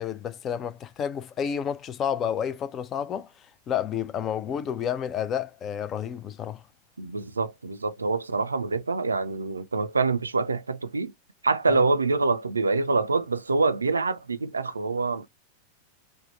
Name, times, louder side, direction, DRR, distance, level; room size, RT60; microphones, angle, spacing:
voice 1, 0.0-3.3 3.7-6.6 11.7-11.8, left 8 dB, 30° left, 0.4 m, -30 dB
voice 2, 7.0-11.1 11.4-15.3, right 3 dB, 75° right, 0.4 m, -25 dB
3.4 x 2.1 x 4.1 m
figure-of-eight pair, 90°, 0 cm